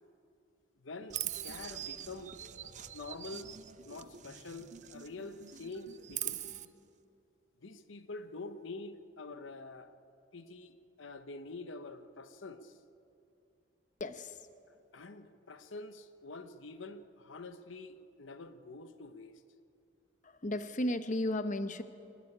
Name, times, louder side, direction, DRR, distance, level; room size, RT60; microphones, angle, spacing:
voice 1, 0.8-2.3 2.9-3.5 3.8-6.4 7.6-9.9 10.3-12.8 14.7-19.4, left 3 dB, 75° left, 10 dB, 0.9 m, -46 dB
sound 1, 1.0-6.6, right 2 dB, 60° right, 1.8 m, -55 dB
Chirp tweet, 1.1-5.1 5.4-6.6, right 12 dB, 35° right, 0.6 m, -42 dB
voice 2, 14.0-14.5 20.2-21.8, left 1 dB, 40° left, 11 dB, 0.9 m, -34 dB
24.0 x 12.5 x 9.9 m, 2.6 s
head